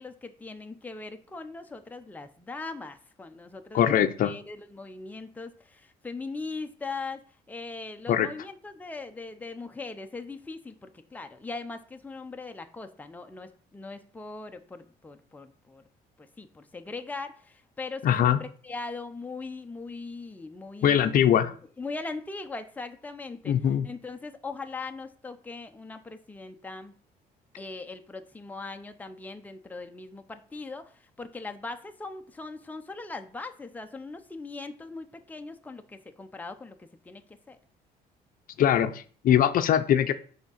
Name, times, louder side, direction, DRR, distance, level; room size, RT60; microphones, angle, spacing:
voice 1, 0.0-15.8 16.2-23.5 23.8-26.9 27.6-37.6, left 3 dB, 10° left, 0.6 m, -40 dB
voice 2, 3.7-4.3 8.1-8.3 18.0-18.4 20.8-21.5 23.5-23.9 38.6-40.1, left 10 dB, 55° left, 0.6 m, -22 dB
6.1 x 3.6 x 5.6 m
cardioid pair, 110°, 17 cm